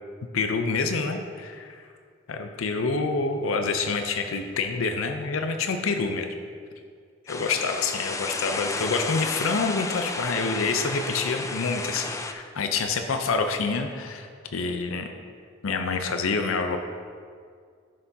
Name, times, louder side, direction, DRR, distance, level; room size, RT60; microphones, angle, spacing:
voice 1, 0.3-1.9 2.3-6.3 7.3-15.1 15.6-16.8, left 4 dB, 75° left, 6 dB, 0.5 m, -27 dB
sound 1, 7.3-12.3, left 3 dB, 15° left, 0.3 m, -32 dB
11.0 x 6.6 x 2.7 m, 2.1 s
head